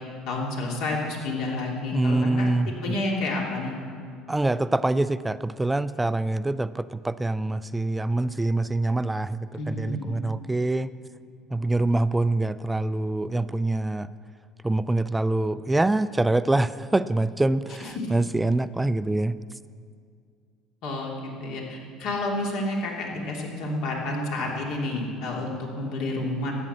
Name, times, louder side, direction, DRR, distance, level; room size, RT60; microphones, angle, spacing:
voice 1, 0.3-3.7 9.5-10.2 17.8-17.9 20.8-26.5, left 2 dB, 70° left, -1 dB, 2.7 m, -30 dB
voice 2, 1.9-3.0 4.3-10.9 11.5-14.1 14.6-19.4, right 2 dB, 10° right, 14 dB, 0.3 m, -25 dB
12.5 x 8.8 x 7.4 m, 2.2 s
supercardioid pair, 100°, 0 cm